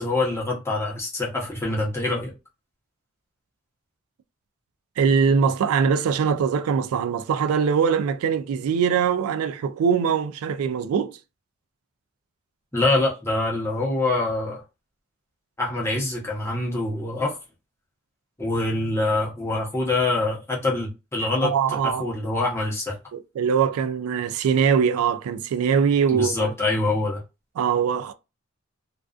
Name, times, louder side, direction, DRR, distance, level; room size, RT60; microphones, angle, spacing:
voice 1, 0.0-2.3 12.7-14.6 15.6-17.4 18.4-23.0 26.1-27.2, left 2 dB, 10° left, 0.7 m, -25 dB
voice 2, 5.0-11.2 21.4-22.0 23.1-26.5 27.6-28.1, right 6 dB, 90° right, 0.3 m, -22 dB
2.3 x 2.3 x 2.3 m
head